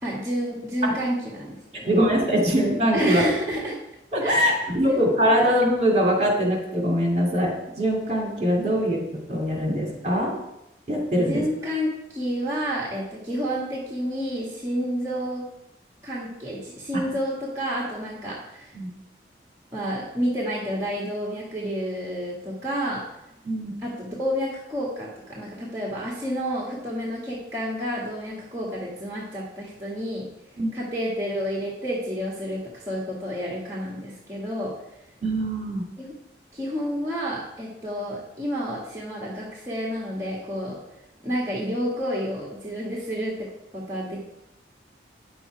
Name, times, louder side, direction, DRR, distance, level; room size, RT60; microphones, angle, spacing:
voice 1, 0.0-1.9 2.9-3.8 4.2-4.6 4.8-5.0 11.3-15.4 16.0-18.8 19.7-23.0 23.8-30.2 30.7-34.7 36.0-36.1 36.5-40.8 41.2-43.3 43.7-44.2, equal, 15° right, -5 dB, 1.7 m, -30 dB
voice 2, 1.9-3.2 4.1-9.0 9.3-10.3 10.9-11.4 18.7-18.9 23.4-23.8 30.6-30.8 35.2-35.8, equal, 35° right, -1 dB, 2.6 m, -22 dB
9.4 x 7.0 x 4.6 m, 0.86 s
head